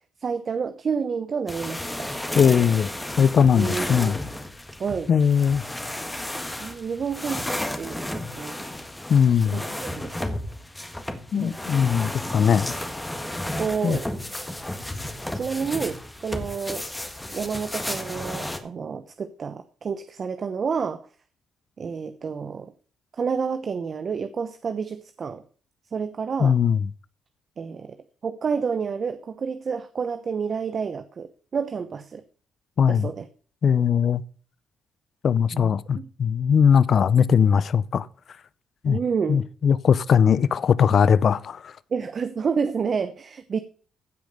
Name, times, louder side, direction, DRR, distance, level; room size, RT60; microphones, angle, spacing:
voice 1, 0.2-2.1 3.6-4.1 4.8-5.1 6.6-7.5 7.7-8.6 9.5-10.2 11.3-11.6 13.6-14.1 15.3-16.9 17.3-21.0 21.8-22.7 23.2-25.4 25.9-26.5 27.6-28.0 28.2-32.2 32.9-33.3 35.5-36.1 38.8-39.4 41.9-43.6, right 6 dB, 45° right, 0.8 m, -29 dB
sound 1, 1.5-18.6, left 1 dB, 10° left, 1.7 m, -33 dB
voice 2, 2.4-2.9 3.2-4.2 5.1-5.6 9.1-9.6 11.3-12.7 13.8-14.0 26.4-26.8 32.8-33.1 33.6-34.2 35.2-38.1 38.8-39.0 39.3-41.7, left 7 dB, 55° left, 0.6 m, -20 dB
15.5 x 5.2 x 6.5 m
cardioid pair, 90°, 0 cm